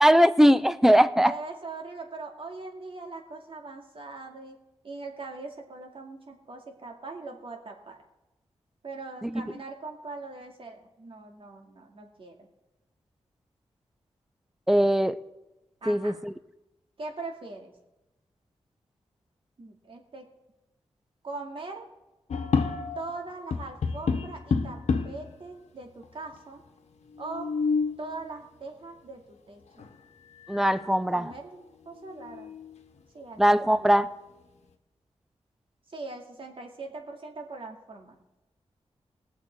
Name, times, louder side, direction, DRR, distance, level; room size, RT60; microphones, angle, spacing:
voice 1, 0.0-1.3 9.2-9.4 14.7-15.2 15.9-16.3 30.5-31.3 33.4-34.1, equal, 5° right, 14 dB, 0.6 m, -20 dB
voice 2, 1.2-4.6 4.8-8.0 8.8-12.5 15.8-16.1 17.0-17.7 19.6-20.3 21.2-21.9 23.0-26.6 27.2-27.5 28.0-29.9 30.5-32.5 33.1-33.9 35.9-38.2, right 3 dB, 55° right, 3 dB, 2.4 m, -41 dB
sound 1, 22.3-23.2 23.5-25.3 26.0-26.1 26.3-26.4 27.1-28.0 29.8-29.9 30.4-30.9 31.3-31.4 31.9-32.8, left 5 dB, 90° left, 1.2 m, -29 dB
21.0 x 7.4 x 4.6 m, 1.0 s
wide cardioid pair, 95°, 11 cm